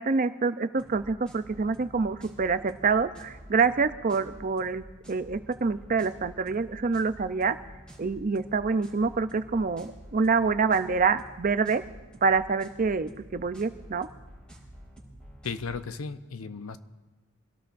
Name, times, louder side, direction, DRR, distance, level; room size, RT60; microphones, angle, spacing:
voice 1, 0.0-7.6 8.0-11.8 12.2-14.1, right 4 dB, 40° right, 11 dB, 0.5 m, -26 dB
sound 1, 0.8-15.8, right 1 dB, 5° left, 4.0 m, -49 dB
voice 2, 15.4-16.8, left 5 dB, 80° left, 11 dB, 0.7 m, -35 dB
25.5 x 17.5 x 2.6 m, 1.2 s
head